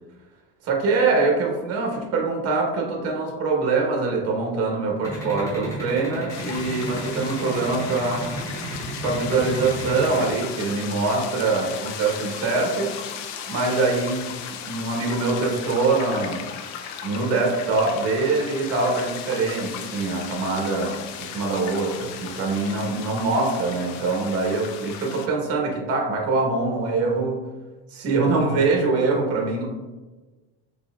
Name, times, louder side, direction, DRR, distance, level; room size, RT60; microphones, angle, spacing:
voice 1, 0.6-8.3 9.0-13.0 13.5-14.2 14.5-16.4 17.0-27.4 27.9-29.7, right 3 dB, 50° right, 0 dB, 1.2 m, -24 dB
sound 1, 5.0-10.3, right 2 dB, 10° left, 0.9 m, -33 dB
sound 2, 6.3-25.3, left 8 dB, 65° left, 0.5 m, -36 dB
4.0 x 3.5 x 2.4 m, 1.2 s
cardioid pair, 145°, 31 cm